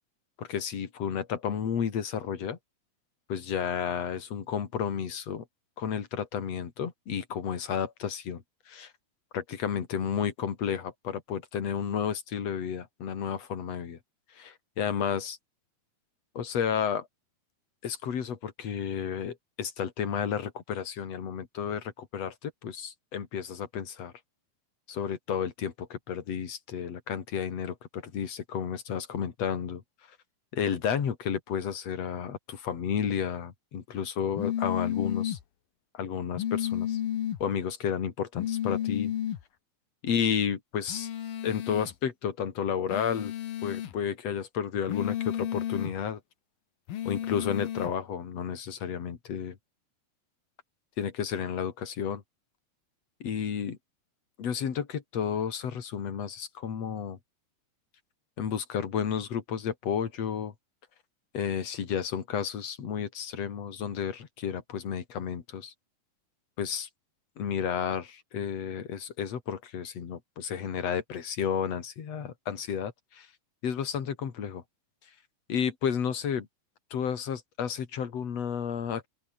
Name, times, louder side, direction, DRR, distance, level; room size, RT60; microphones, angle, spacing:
voice 1, 0.4-2.6 3.3-5.4 5.8-8.9 9.3-14.0 14.3-15.4 16.3-17.1 17.8-24.1 24.9-29.8 30.5-35.4 35.9-37.0 37.4-39.1 40.0-41.1 41.4-43.3 43.6-46.2 47.0-49.6 51.0-52.2 53.2-53.8 54.4-57.2 58.4-60.5 61.3-65.7 66.6-66.9 67.4-73.3 73.6-74.6 75.5-76.5 76.9-79.1, left 7 dB, 45° left, 3.1 m, -32 dB
sound 1, 34.3-35.4 36.3-37.4 38.4-39.4 40.9-41.9 42.9-43.9 44.9-45.9 46.9-47.9, left 11 dB, 65° left, 3.4 m, -32 dB
open air
omnidirectional pair, 4.7 m